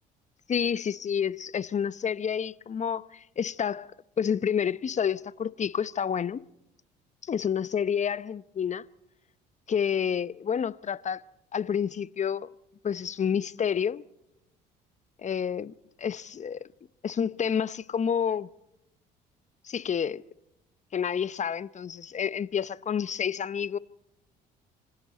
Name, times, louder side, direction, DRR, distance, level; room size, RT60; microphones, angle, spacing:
voice 1, 0.5-3.9 4.2-6.4 7.2-8.8 9.7-11.2 11.5-12.5 12.8-14.0 15.2-15.7 16.0-16.7 17.0-18.5 19.6-20.2 20.9-23.8, left 7 dB, 35° left, 0.8 m, -29 dB
26.5 x 25.5 x 4.3 m
hypercardioid pair, 60°, 21 cm